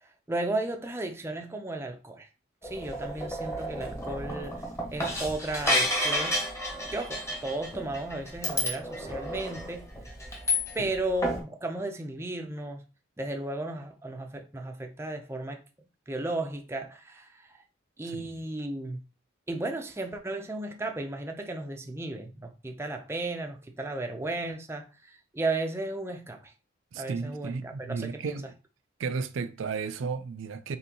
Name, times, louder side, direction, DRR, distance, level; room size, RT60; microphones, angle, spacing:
voice 1, 0.0-2.3 2.6-4.6 4.9-6.4 6.9-9.8 10.7-12.8 13.2-15.6 16.1-17.6 18.0-19.0 19.5-26.5 27.0-28.4, right 2 dB, 15° right, 0.4 m, -34 dB
sound 1, 2.6-11.0 11.2-11.4, left 1 dB, 15° left, 1.0 m, -31 dB
voice 2, 18.0-18.4 26.9-28.5 29.0-30.8, right 5 dB, 80° right, 0.4 m, -34 dB
4.3 x 3.6 x 2.8 m
head